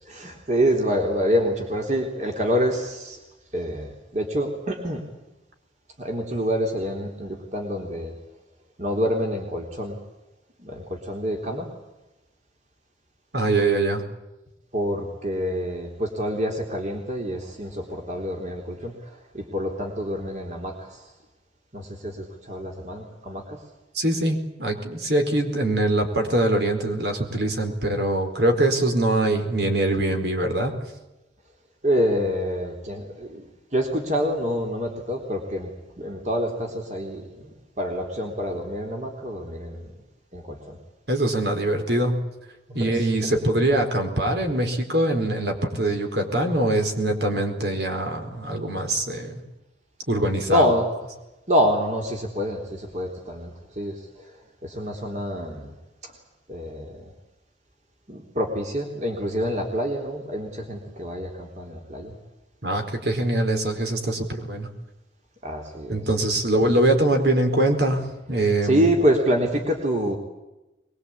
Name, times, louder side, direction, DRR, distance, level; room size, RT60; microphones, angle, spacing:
voice 1, 0.0-3.2 3.5-5.1 6.0-8.2 8.8-10.0 10.6-11.7 14.7-21.1 21.7-23.6 31.8-35.7 36.0-39.9 40.3-40.8 42.7-43.3 50.5-50.9 51.5-55.8 56.0-56.2 56.5-57.1 58.1-62.2 65.4-66.1 68.6-70.2, equal, 40° right, 2 dB, 3.6 m, -27 dB
voice 2, 13.3-14.0 23.9-30.8 41.1-42.2 42.7-49.4 50.1-50.7 62.6-64.7 65.9-68.8, right 1 dB, 60° right, 5 dB, 4.6 m, -23 dB
23.0 x 23.0 x 8.8 m, 0.99 s
head